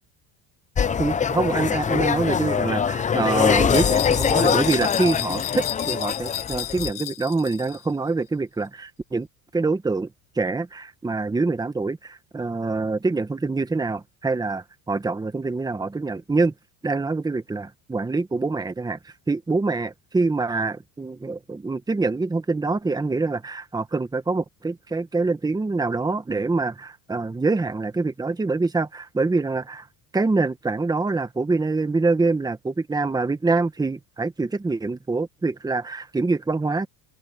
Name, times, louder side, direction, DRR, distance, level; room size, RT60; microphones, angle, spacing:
sound 1, 0.8-6.9, left 7 dB, 20° left, 0.6 m, -23 dB
voice 1, 1.0-9.3 9.5-10.1 10.4-16.5 16.8-29.9 30.1-36.9, right 3 dB, 10° right, 1.3 m, -25 dB
sound 2, 3.7-7.8, left 14 dB, 50° left, 1.7 m, -32 dB
open air
cardioid pair, 135°, 42 cm